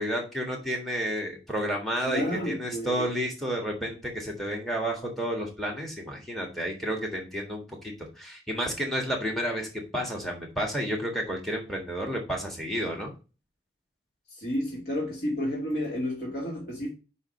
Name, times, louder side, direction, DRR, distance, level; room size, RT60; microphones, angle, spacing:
voice 1, 0.0-13.1, equal, ahead, 1.6 m, -31 dB
voice 2, 2.1-3.1 14.4-16.9, left 1 dB, 55° left, 2.3 m, -31 dB
5.5 x 5.1 x 6.4 m
head